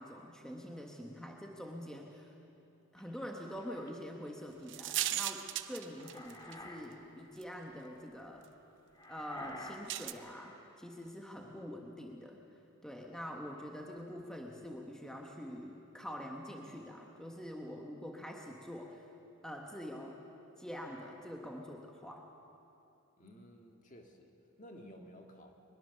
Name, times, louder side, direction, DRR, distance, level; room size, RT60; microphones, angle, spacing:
voice 1, 0.0-2.3 2.9-8.5 9.1-12.4 12.8-19.1 19.4-20.2 20.6-22.3, equal, 5° left, 1 dB, 1.2 m, -45 dB
sound 1, 3.0-3.9 5.7-6.8 7.2-7.4 8.9-10.7, left 1 dB, 20° left, 1.8 m, -50 dB
sound 2, 4.7-6.5 7.4-7.5 9.9-10.1, right 13 dB, 55° right, 0.7 m, -36 dB
voice 2, 23.2-25.5, equal, 35° left, 3 dB, 1.7 m, -54 dB
22.0 x 21.5 x 6.9 m, 2.8 s
head